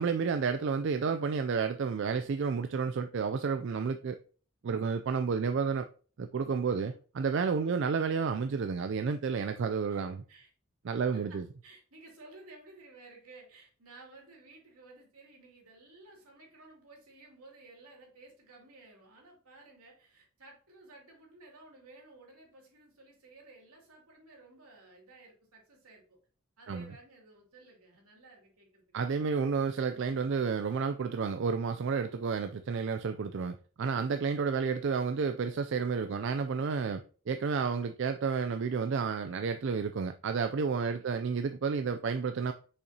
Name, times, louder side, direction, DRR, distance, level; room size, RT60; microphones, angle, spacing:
voice 1, 0.0-4.2 4.6-5.9 6.2-10.2 10.8-11.4 26.7-26.9 28.9-42.5, right 5 dB, 55° right, 0.3 m, -31 dB
voice 2, 6.6-7.0 9.9-10.0 10.3-10.5 11.1-26.2 26.6-28.8 40.8-41.1, right 2 dB, 80° right, 2.6 m, -55 dB
6.5 x 5.6 x 2.8 m
head